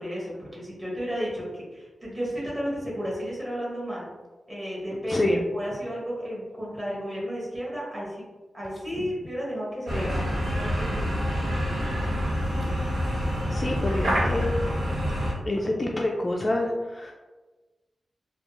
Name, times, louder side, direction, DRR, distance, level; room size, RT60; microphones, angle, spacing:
voice 1, 0.0-4.1 4.5-5.2 5.5-8.2 8.5-11.1, equal, 20° right, -6 dB, 1.4 m, -33 dB
voice 2, 5.1-5.4 9.0-9.1 9.9-10.1 13.5-14.5 15.5-17.1, left 1 dB, 30° left, 0 dB, 0.3 m, -27 dB
sound 1, 9.9-15.3, equal, 85° right, 1.3 m, -27 dB
3.2 x 2.3 x 3.0 m, 1.2 s
wide cardioid pair, 110°, 0 cm